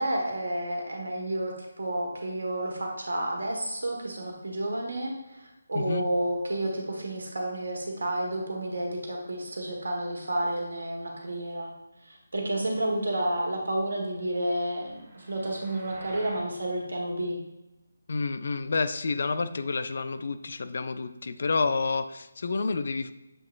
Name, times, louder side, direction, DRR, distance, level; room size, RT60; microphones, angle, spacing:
voice 1, 0.0-11.7 12.0-17.4, right 1 dB, 75° right, 0 dB, 1.2 m, -31 dB
voice 2, 5.7-6.1 18.1-23.1, left 4 dB, 55° left, 11 dB, 0.3 m, -29 dB
sound 1, 14.3-16.5, right 2 dB, 25° right, 1.0 m, -49 dB
7.5 x 2.9 x 2.4 m, 0.99 s
figure-of-eight pair, 155°, 0 cm